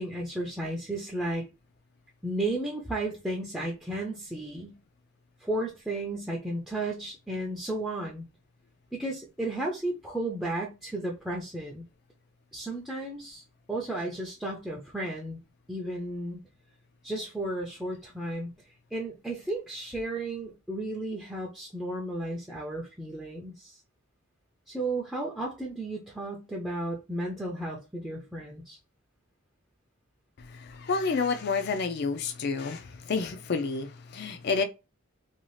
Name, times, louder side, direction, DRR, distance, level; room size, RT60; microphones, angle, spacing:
voice 1, 0.0-1.5 2.2-4.8 5.4-8.3 8.9-11.8 12.5-13.4 13.7-15.4 15.7-16.4 17.0-18.5 18.9-23.8 24.7-28.8, right 1 dB, ahead, 0.5 m, -33 dB
voice 2, 30.4-34.6, left 4 dB, 55° left, 0.4 m, -30 dB
2.7 x 2.4 x 3.1 m
head